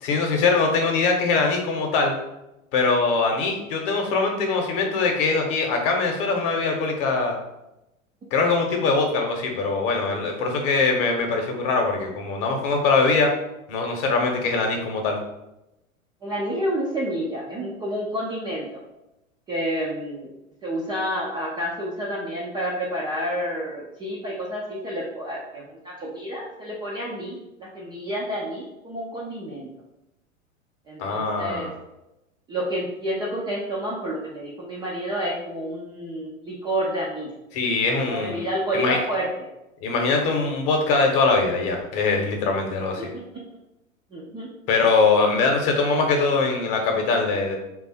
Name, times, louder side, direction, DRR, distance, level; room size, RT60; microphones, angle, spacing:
voice 1, 0.0-2.2 2.7-7.4 8.3-13.3 13.7-15.2 31.0-31.7 37.5-38.4 38.7-39.0 39.8-43.1 44.7-47.6, left 4 dB, 40° left, 2 dB, 0.9 m, -22 dB
voice 2, 16.2-18.8 19.5-20.3 20.6-29.7 30.9-31.7 32.5-37.3 38.0-39.5 43.0-43.1 44.1-44.5, equal, 10° right, -6 dB, 0.4 m, -29 dB
3.3 x 2.4 x 4.2 m, 0.92 s
figure-of-eight pair, 95°, 41 cm